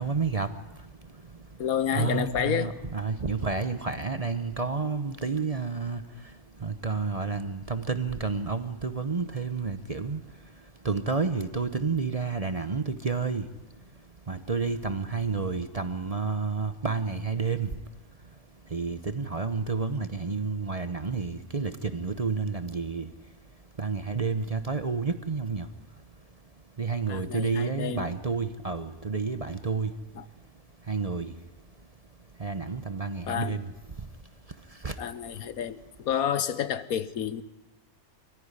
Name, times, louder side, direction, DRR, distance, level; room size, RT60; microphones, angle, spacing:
voice 1, 0.0-1.6 1.9-35.0, right 4 dB, 30° right, 0.8 m, -31 dB
voice 2, 1.6-2.7 27.1-28.1 30.2-30.3 33.3-33.6 35.0-37.4, left 9 dB, 80° left, 1.4 m, -30 dB
23.0 x 14.5 x 9.8 m
omnidirectional pair, 1.5 m